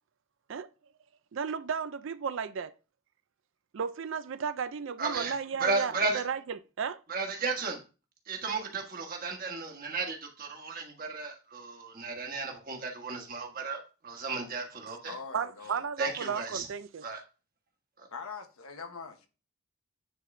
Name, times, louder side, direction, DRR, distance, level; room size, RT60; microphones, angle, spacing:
voice 1, 1.3-2.7 3.7-7.0 15.3-17.0, right 6 dB, 60° right, 0.4 m, -34 dB
voice 2, 5.0-5.3 5.6-6.2 7.1-7.8 8.3-15.1 16.0-16.7 17.0-17.2 18.0-18.1, right 3 dB, 40° right, 1.3 m, -34 dB
voice 3, 15.0-15.8 18.1-19.3, left 5 dB, 90° left, 1.1 m, -42 dB
9.4 x 3.9 x 3.2 m
head